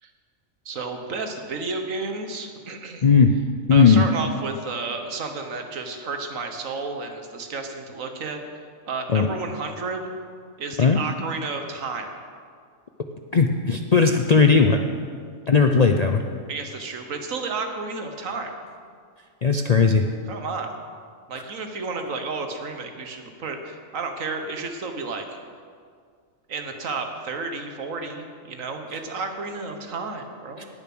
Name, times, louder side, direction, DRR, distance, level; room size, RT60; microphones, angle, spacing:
voice 1, 0.6-3.0 3.7-8.4 8.9-10.1 10.6-12.1 16.5-18.5 20.3-20.7 21.3-25.4 26.5-30.7, right 4 dB, 75° right, 5 dB, 1.6 m, -32 dB
voice 2, 3.7-4.0 9.1-9.3 10.8-11.0 13.3-14.8 15.5-16.2 19.4-20.0, left 5 dB, 50° left, 5 dB, 0.5 m, -17 dB
18.5 x 7.2 x 6.1 m, 2.1 s
omnidirectional pair, 1.4 m